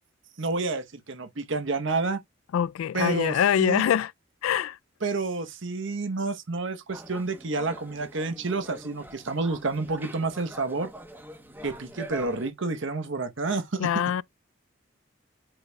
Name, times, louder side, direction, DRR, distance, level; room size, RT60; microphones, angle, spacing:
voice 1, 0.4-2.2 2.9-3.8 5.0-10.9 11.6-13.9, right 3 dB, 65° right, 0.9 m, -29 dB
voice 2, 2.5-4.1 4.4-4.8 13.8-14.2, left 9 dB, 90° left, 0.3 m, -24 dB
sound 1, 6.9-12.5, right 1 dB, 10° right, 0.9 m, -44 dB
8.8 x 5.0 x 2.3 m
head